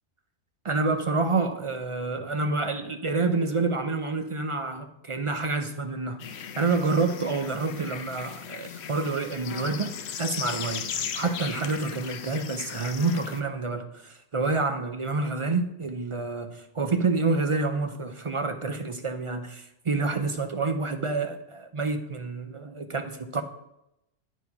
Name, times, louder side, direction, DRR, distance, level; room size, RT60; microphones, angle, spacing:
voice 1, 0.6-23.4, right 3 dB, 40° right, 0.5 m, -28 dB
sound 1, 6.2-13.4, left 8 dB, 75° left, 0.9 m, -37 dB
8.9 x 4.7 x 5.4 m
omnidirectional pair, 1.1 m